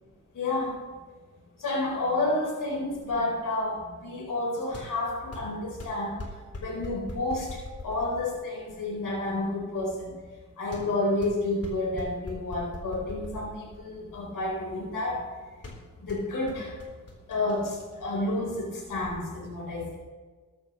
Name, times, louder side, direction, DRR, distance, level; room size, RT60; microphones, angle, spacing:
voice 1, 0.3-0.8 1.6-6.2 6.6-10.1 10.6-15.2 16.0-16.7 17.3-20.0, left 2 dB, 70° left, -1 dB, 4.2 m, -30 dB
sound 1, 2.9-19.1, left 2 dB, 45° left, 3.8 m, -44 dB
19.0 x 12.5 x 3.1 m, 1.4 s
supercardioid pair, 40°, 33 cm